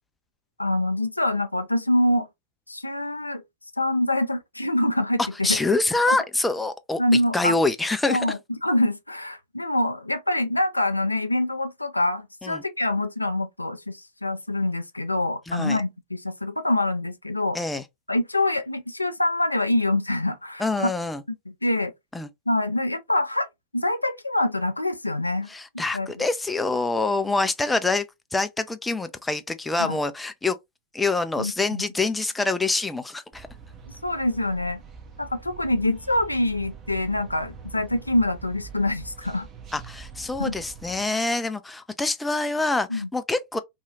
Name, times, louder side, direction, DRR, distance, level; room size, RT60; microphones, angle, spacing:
voice 1, 0.6-2.3 2.7-3.4 3.8-5.6 6.1-6.2 7.0-7.6 8.1-17.6 18.1-20.9 21.5-21.9 22.5-23.5 23.7-25.5 25.9-26.2 29.8-30.0 31.4-31.8 34.0-34.8 35.2-39.5 40.4-40.5 42.9-43.1, left 1 dB, 85° left, 0.3 m, -25 dB
voice 2, 5.2-8.2 12.4-12.6 15.5-15.8 17.5-17.8 20.6-21.2 22.1-22.3 25.5-28.1 28.3-30.6 30.9-33.5 39.7-43.6, left 3 dB, 10° left, 0.3 m, -26 dB
sound 1, 33.3-41.1, right 5 dB, 30° right, 0.7 m, -44 dB
2.8 x 2.3 x 2.6 m
figure-of-eight pair, 90°, 0 cm